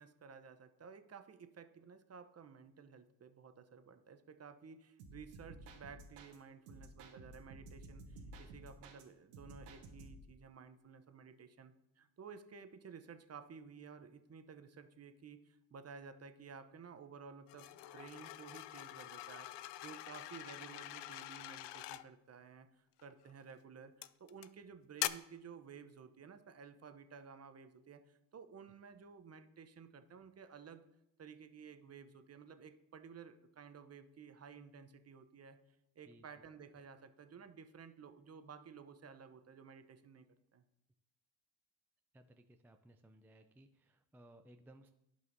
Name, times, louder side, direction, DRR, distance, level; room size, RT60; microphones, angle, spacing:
voice 1, 0.0-30.9 31.2-35.6 36.0-40.3 40.5-40.6, right 6 dB, 30° right, 9 dB, 0.8 m, -54 dB
sound 1, 5.0-6.4 6.7-9.0 9.3-10.3, right 2 dB, 80° right, 1.3 m, -54 dB
sound 2, 17.5-22.0 23.0-23.3 24.0-24.5 25.0-25.1, left 15 dB, 60° left, 0.5 m, -44 dB
voice 2, 42.1-44.9, right 1 dB, 5° right, 6 dB, 0.3 m, -61 dB
11.0 x 5.7 x 2.7 m, 0.82 s
hypercardioid pair, 60°, 49 cm